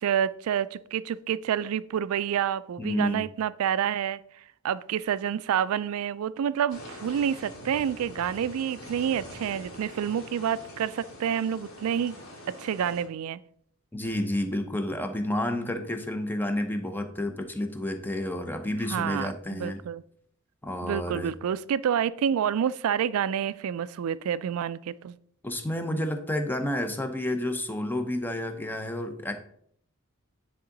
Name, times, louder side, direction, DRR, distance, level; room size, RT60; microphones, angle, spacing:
voice 1, 0.0-4.2 4.6-12.2 12.5-13.4 18.9-20.0 20.8-25.2, right 8 dB, 80° right, 17 dB, 0.3 m, -28 dB
voice 2, 2.8-3.2 13.9-19.8 20.6-21.3 25.4-29.3, left 1 dB, 10° left, 6 dB, 0.6 m, -30 dB
sound 1, 6.7-13.0, left 1 dB, 90° left, 2.3 m, -44 dB
9.7 x 3.6 x 3.9 m, 0.67 s
head